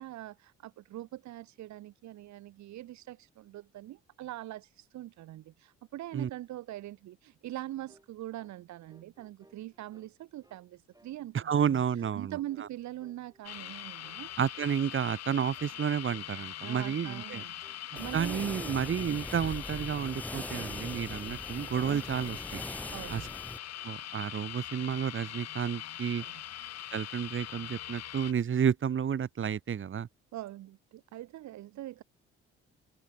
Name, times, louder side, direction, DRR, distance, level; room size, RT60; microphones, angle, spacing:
voice 1, 0.0-11.8 12.1-14.3 16.6-18.4 22.9-23.3 26.2-26.3 30.3-32.0, right 14 dB, 60° right, 1.2 m, -43 dB
sound 1, 7.9-8.1 8.4-8.6 8.9-10.1 10.4-10.7 10.9-11.2 11.4-11.7 12.0-12.7 13.0-13.8 14.0-14.2 14.5-14.7 15.0-15.3 15.6-15.8 16.1-16.3 16.6-16.8 17.1-17.3 17.6-17.8 18.1-18.3 18.6-18.9 19.1-19.4 19.6-19.9 20.2-20.9 21.2-21.9 22.2-23.0 23.2-24.0, right 1 dB, 10° right, 7.4 m, -63 dB
voice 2, 11.3-12.4 14.4-17.4 18.1-22.6 23.1-23.2 23.8-26.2 26.9-30.1, right 8 dB, 40° right, 1.2 m, -31 dB
sound 2, 13.4-28.3, left 12 dB, 55° left, 1.2 m, -42 dB
sound 3, 18.0-23.6, left 1 dB, 5° left, 2.4 m, -41 dB
hypercardioid pair, 55°, 32 cm